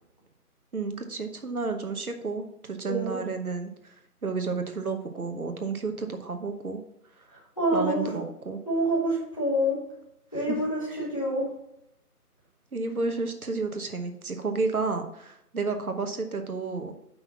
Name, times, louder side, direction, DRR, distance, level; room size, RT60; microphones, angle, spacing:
voice 1, 0.7-3.7 4.2-6.8 7.7-8.6 10.3-10.6 10.9-11.0 12.7-17.0, right 4 dB, 65° right, 6 dB, 1.1 m, -31 dB
voice 2, 2.9-3.2 7.6-8.1 8.6-9.8 10.3-11.4, right 1 dB, 20° left, -7 dB, 1.7 m, -26 dB
5.7 x 5.6 x 5.6 m, 0.79 s
figure-of-eight pair, 180°, 46 cm